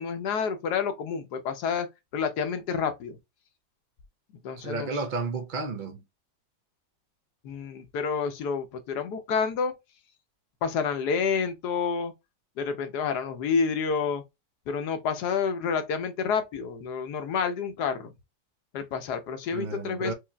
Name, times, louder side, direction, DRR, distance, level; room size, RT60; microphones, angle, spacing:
voice 1, 0.0-1.9 2.1-3.2 4.4-4.9 7.4-9.7 10.6-12.1 12.6-14.2 14.7-18.1 18.7-20.1, left 6 dB, 85° left, 1.4 m, -29 dB
voice 2, 4.6-6.0 19.5-20.1, right 3 dB, 60° right, 0.5 m, -32 dB
4.8 x 2.8 x 2.2 m
omnidirectional pair, 1.7 m